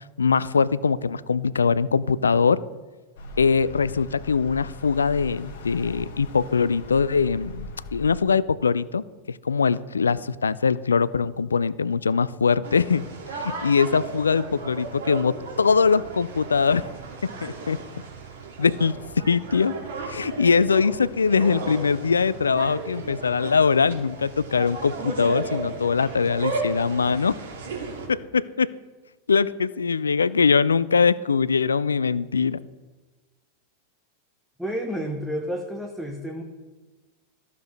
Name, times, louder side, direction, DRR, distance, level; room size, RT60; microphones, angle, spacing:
voice 1, 0.2-2.6 3.4-16.8 17.4-17.8 18.6-19.7 20.0-27.4 28.1-28.7 29.3-32.6, left 5 dB, 75° left, 19 dB, 0.3 m, -22 dB
sound 1, 3.2-8.2, left 2 dB, 55° left, 1.3 m, -40 dB
sound 2, 12.6-28.1, right 3 dB, 60° right, 2.1 m, -35 dB
voice 2, 34.6-36.4, equal, ahead, 2 dB, 0.9 m, -30 dB
14.5 x 6.7 x 3.2 m, 1.3 s
figure-of-eight pair, 90°, 0 cm